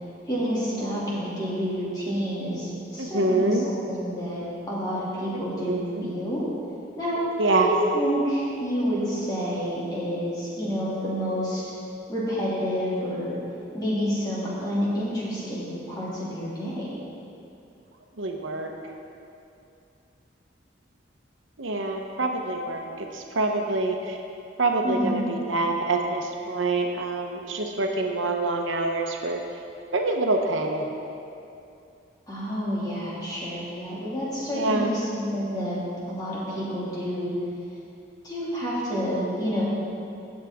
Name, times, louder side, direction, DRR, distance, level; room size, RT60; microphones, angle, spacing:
voice 1, 0.3-6.4 6.9-7.2 7.6-11.6 12.1-13.3 13.7-16.9 24.8-25.3 32.3-35.8 36.1-37.3 38.2-39.6, equal, 20° left, -8 dB, 2.6 m, -29 dB
voice 2, 3.0-3.7 5.5-6.1 7.4-7.7 18.2-18.7 21.6-24.2 24.6-29.4 29.9-30.9 34.5-35.0, right 2 dB, 90° right, 2 dB, 1.0 m, -26 dB
16.5 x 7.3 x 3.7 m, 2.6 s
head